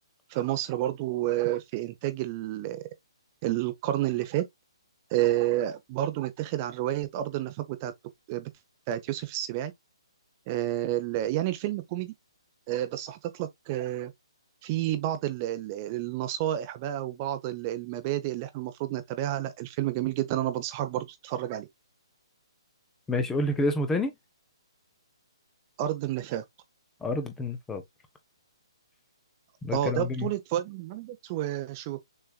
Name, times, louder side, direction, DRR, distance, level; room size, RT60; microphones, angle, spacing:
voice 1, 0.3-2.8 3.4-4.4 5.1-7.9 8.3-8.5 8.9-9.7 10.5-12.1 12.7-14.1 14.6-21.7 25.8-26.4 29.7-32.0, right 13 dB, 25° right, 0.7 m, -30 dB
voice 2, 23.1-24.1 27.0-27.8 29.6-30.3, left 2 dB, 10° left, 0.7 m, -28 dB
6.6 x 3.4 x 2.2 m
figure-of-eight pair, 130°, 3 cm